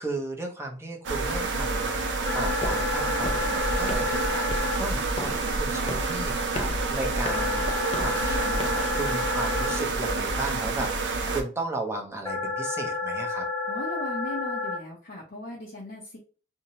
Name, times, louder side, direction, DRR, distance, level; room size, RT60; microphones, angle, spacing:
voice 1, 0.0-13.4, right 2 dB, 15° right, 1 dB, 0.6 m, -35 dB
sound 1, 1.0-11.4, right 3 dB, 80° right, 0.5 m, -28 dB
sound 2, 2.2-4.7 7.2-9.7 12.2-14.7, left 3 dB, 20° left, 0.9 m, -30 dB
sound 3, 2.6-9.0, left 1 dB, 35° left, 0.3 m, -37 dB
voice 2, 13.7-16.2, left 1 dB, 70° left, -3 dB, 0.7 m, -38 dB
2.7 x 2.1 x 2.8 m, 0.38 s
head